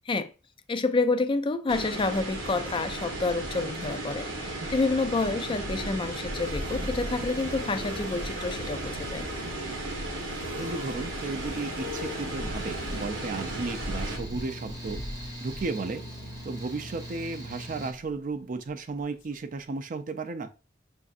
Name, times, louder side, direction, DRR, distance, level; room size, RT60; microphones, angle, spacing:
voice 1, 0.7-9.3, left 3 dB, 25° left, 0.3 m, -28 dB
sound 1, 1.7-14.2, right 2 dB, 85° right, 1.0 m, -35 dB
sound 2, 5.1-18.5 19.0-19.3 19.6-19.7, left 1 dB, 85° left, 0.7 m, -41 dB
voice 2, 10.6-15.0 15.4-16.0 16.4-20.5, right 3 dB, 45° right, 0.4 m, -34 dB
Mechanical fan, 12.5-17.9, equal, 20° right, 0.9 m, -42 dB
5.9 x 2.6 x 2.4 m
head